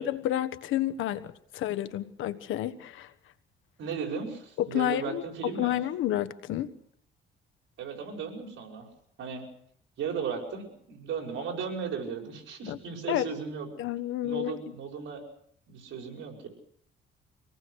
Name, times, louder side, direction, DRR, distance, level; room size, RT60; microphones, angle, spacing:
voice 1, 0.0-3.1 4.6-6.7 12.7-12.8 13.1-13.3 13.8-14.5, left 12 dB, 90° left, 1.4 m, -30 dB
voice 2, 3.8-5.8 7.8-8.9 9.2-9.5 10.0-13.7 14.2-15.2 15.7-16.5, right 6 dB, 75° right, 5.7 m, -36 dB
25.5 x 18.5 x 6.5 m
cardioid pair, 90°, 20 cm